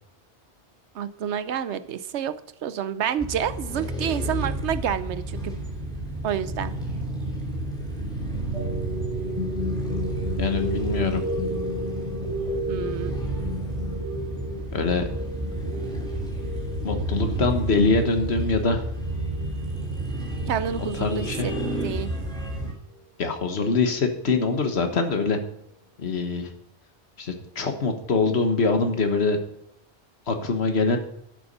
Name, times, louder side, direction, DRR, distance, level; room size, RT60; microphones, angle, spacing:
voice 1, 0.9-2.4 2.6-5.6 6.2-6.7 12.7-13.2 20.5-21.5 21.8-22.1, right 9 dB, 90° right, 13 dB, 1.0 m, -29 dB
sound 1, 3.2-22.7, right 1 dB, 5° left, 3.9 m, -31 dB
sound 2, 8.5-22.0, equal, 35° right, 3.7 m, -34 dB
voice 2, 10.4-11.2 14.7-15.0 16.8-18.8 20.9-21.5 23.2-25.4 26.0-26.5 27.2-29.4 30.3-31.0, left 4 dB, 70° left, 6 dB, 1.6 m, -24 dB
12.0 x 7.1 x 5.4 m, 0.78 s
omnidirectional pair, 1.1 m